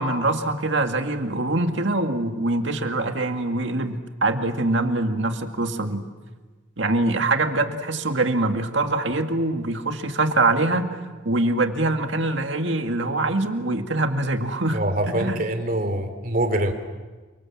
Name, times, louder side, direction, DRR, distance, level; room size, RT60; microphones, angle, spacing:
voice 1, 0.0-6.0 6.8-10.9 11.2-14.8 15.1-15.4, right 2 dB, 65° right, 6 dB, 2.2 m, -24 dB
voice 2, 14.7-16.7, right 1 dB, 45° right, 7 dB, 2.8 m, -24 dB
30.0 x 25.5 x 7.6 m, 1.3 s
head